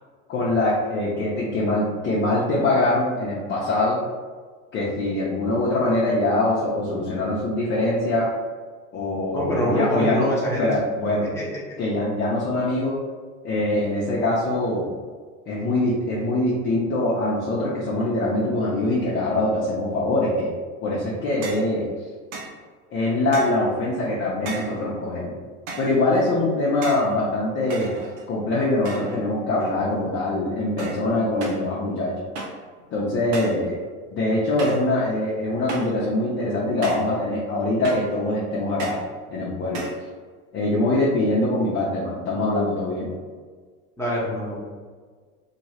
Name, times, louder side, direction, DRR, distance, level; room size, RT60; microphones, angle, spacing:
voice 1, 0.3-4.0 4.7-8.3 8.9-10.2 10.6-11.3 11.8-13.0 13.4-14.9 15.5-20.5 20.8-21.9 22.9-25.3 25.8-27.9 28.3-32.2 32.9-33.8 34.1-39.0 39.3-39.9 40.5-43.1, left 2 dB, 25° left, -6 dB, 0.6 m, -23 dB
voice 2, 9.3-10.7 11.3-11.6 44.0-44.6, equal, 5° left, -6 dB, 1.1 m, -25 dB
sound 1, 21.4-21.7 22.3-22.6 23.3-23.7 24.5-24.8 25.7-26.0 26.8-27.1 27.7-28.4 28.9-29.2 29.6-30.0 30.8-31.1 31.4-31.7 32.4-32.7 33.3-33.7 34.6-34.9 35.7-36.0 36.8-37.2 37.8-38.2 38.8-39.1 39.7-40.0, right 3 dB, 60° right, 0.9 m, -35 dB
2.9 x 2.8 x 2.8 m, 1.5 s
hypercardioid pair, 105°, 42 cm